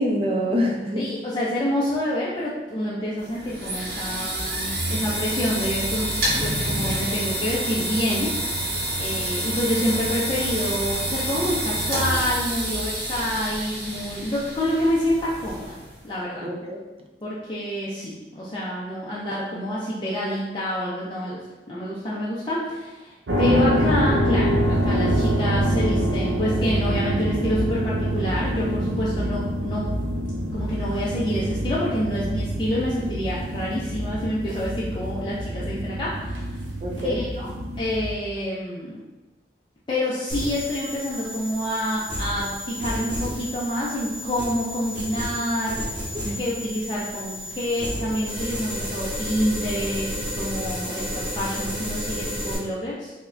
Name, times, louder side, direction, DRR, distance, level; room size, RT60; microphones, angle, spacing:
voice 1, 0.0-1.1 16.4-16.8 36.8-37.2 46.2-46.4, equal, 30° right, 1 dB, 0.4 m, -25 dB
voice 2, 1.0-6.1 6.4-8.3 9.0-15.8 16.0-16.5 17.2-30.0 30.5-36.6 37.0-37.5 37.8-39.0 39.9-45.8 46.4-53.1, equal, 25° left, -8 dB, 0.4 m, -27 dB
sound 1, 3.2-16.0, right 1 dB, 55° right, 0.9 m, -28 dB
sound 2, 23.3-38.1, equal, 90° right, 0.6 m, -25 dB
sound 3, 40.3-52.6, equal, 5° right, 1.3 m, -32 dB
4.6 x 2.1 x 2.5 m, 1.1 s
head